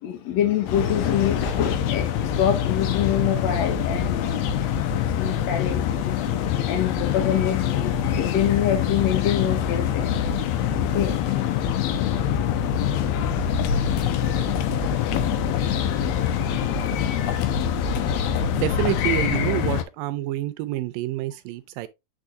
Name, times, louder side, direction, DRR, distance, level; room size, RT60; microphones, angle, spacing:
voice 1, 0.0-4.4 4.9-6.2 6.7-10.3 10.9-11.3 12.8-13.2 14.2-15.0 15.9-17.5, left 9 dB, 65° left, 1.8 m, -27 dB
sound 1, 0.7-19.8, left 8 dB, 85° left, 2.8 m, -24 dB
voice 2, 18.6-21.9, right 15 dB, 80° right, 2.1 m, -27 dB
8.8 x 4.6 x 2.5 m
omnidirectional pair, 4.3 m